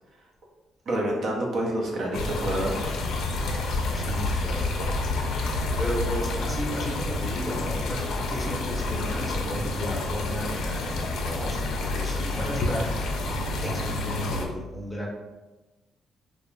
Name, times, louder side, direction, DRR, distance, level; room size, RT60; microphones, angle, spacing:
voice 1, 0.9-3.0, right 1 dB, 65° right, -1 dB, 0.6 m, -28 dB
sound 1, 2.1-14.5, left 2 dB, 80° left, 0.4 m, -29 dB
voice 2, 3.4-5.0 5.4-13.4 13.6-15.1, equal, 5° left, -3 dB, 0.7 m, -35 dB
2.5 x 2.1 x 3.1 m, 1.1 s
cardioid pair, 90°, 0 cm